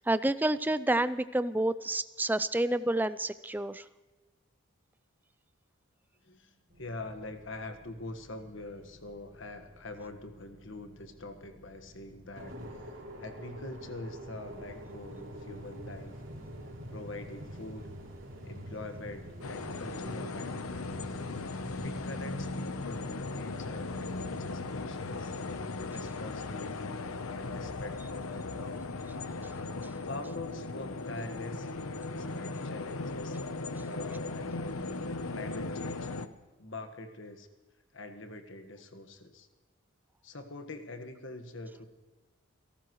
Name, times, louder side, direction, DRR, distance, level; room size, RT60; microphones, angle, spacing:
voice 1, 0.0-3.8, right 1 dB, 10° right, 14 dB, 0.4 m, -29 dB
voice 2, 6.2-12.9 13.2-16.2 16.9-17.9 18.4-21.0 21.8-25.3 25.9-28.9 30.0-33.5 33.8-34.8 35.3-36.1 36.6-37.5 37.9-39.5 40.2-41.8, left 2 dB, 60° left, 7 dB, 1.6 m, -44 dB
sound 1, 6.7-24.4, left 1 dB, 45° right, 6.1 m, -56 dB
sound 2, 12.3-22.6, equal, 60° right, 3.9 m, -46 dB
sound 3, 19.4-36.3, left 3 dB, 85° left, 0.9 m, -37 dB
29.5 x 13.0 x 3.1 m, 1.3 s
head